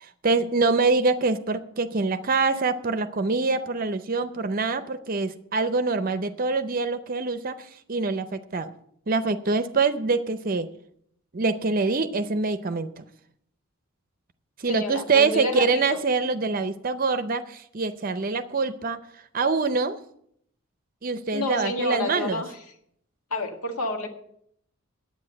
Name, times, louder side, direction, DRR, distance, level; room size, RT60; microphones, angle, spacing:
voice 1, 0.0-8.7 9.1-10.7 11.3-13.0 14.6-19.0 19.3-20.0 21.0-22.4, right 4 dB, 40° right, 11 dB, 0.6 m, -25 dB
voice 2, 14.7-16.0 21.3-22.5 23.3-24.1, left 1 dB, 85° left, 5 dB, 1.7 m, -29 dB
9.8 x 8.5 x 7.5 m, 0.69 s
head